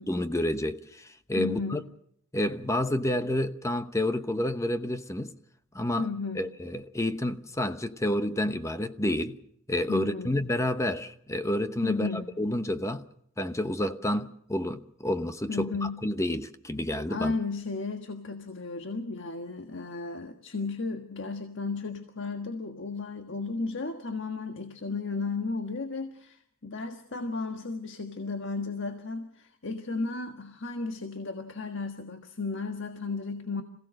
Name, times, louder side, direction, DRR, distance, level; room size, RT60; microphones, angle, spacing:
voice 1, 0.1-1.8 2.3-5.3 5.7-6.1 6.3-9.4 9.7-13.1 13.4-17.4, left 1 dB, 15° left, 1.0 m, -29 dB
voice 2, 1.3-1.8 6.0-6.5 9.9-10.3 11.8-12.3 15.5-16.0 17.1-33.6, left 3 dB, 65° left, 1.5 m, -34 dB
26.5 x 16.5 x 6.4 m
head